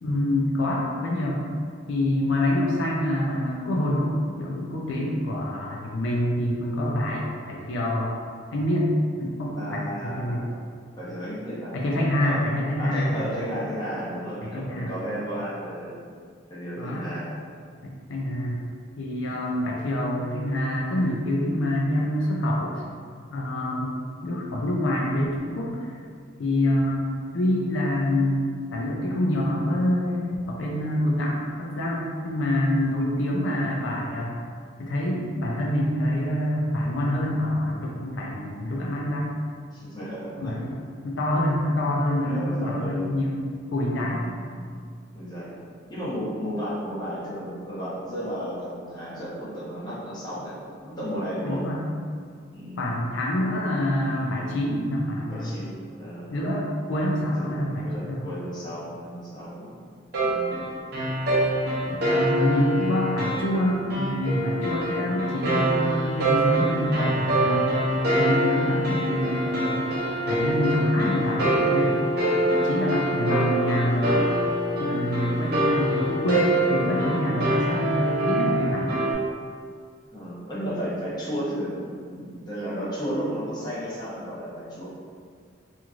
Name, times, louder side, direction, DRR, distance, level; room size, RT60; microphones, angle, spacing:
voice 1, 0.0-1.4 1.9-8.1 8.5-8.9 9.2-10.5 11.7-13.3 14.4-14.9 16.8-17.1 17.8-18.6 19.0-22.8 23.3-23.9 24.2-25.9 26.4-27.1 27.3-34.4 34.8-39.3 40.4-43.4 43.7-44.2 51.4-51.8 52.8-55.6 56.3-58.2 61.9-67.8 68.1-69.9 70.3-72.0 72.5-74.2 74.8-78.9, left 1 dB, 75° left, -3 dB, 0.4 m, -26 dB
voice 2, 9.6-10.5 11.0-11.8 12.1-12.4 12.8-16.0 16.5-17.3 39.7-40.5 42.2-43.1 44.0-44.7 45.1-45.5 45.9-51.7 52.5-53.1 55.3-56.3 57.8-59.8 60.2-60.7 80.1-84.9, equal, 20° left, -9 dB, 0.7 m, -33 dB
sound 1, 60.1-79.1, right 1 dB, 55° right, 0.6 m, -25 dB
3.0 x 2.5 x 2.4 m, 2.1 s
head